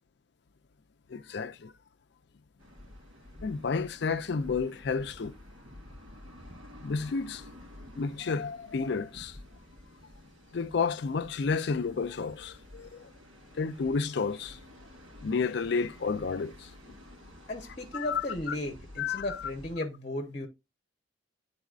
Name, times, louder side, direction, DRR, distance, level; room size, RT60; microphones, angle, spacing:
voice 1, 1.1-1.7 3.4-5.3 6.8-7.4 8.0-9.4 10.5-13.1 13.5-14.6 15.2-16.7 17.9-18.5 19.0-19.3, left 5 dB, 55° left, 0.4 m, -31 dB
sound 1, 2.6-19.8, left 1 dB, 85° right, 2.5 m, -51 dB
voice 2, 17.5-20.5, left 1 dB, 35° left, 0.8 m, -35 dB
10.5 x 4.0 x 2.4 m
head